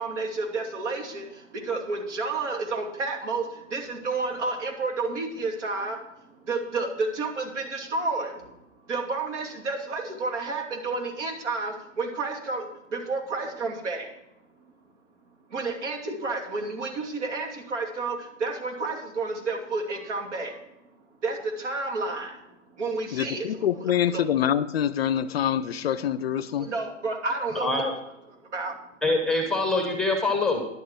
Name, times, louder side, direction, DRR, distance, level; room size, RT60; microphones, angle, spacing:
voice 1, 0.0-6.0 6.4-8.5 8.9-14.1 15.5-20.7 21.2-23.5 24.0-24.2 26.6-27.7 28.4-28.8, right 3 dB, 65° right, 2.9 m, -30 dB
voice 2, 23.1-26.7, left 9 dB, 50° left, 0.5 m, -25 dB
voice 3, 27.6-27.9 29.0-30.6, left 2 dB, ahead, 0.9 m, -24 dB
10.5 x 7.4 x 5.9 m
hypercardioid pair, 145°, 38 cm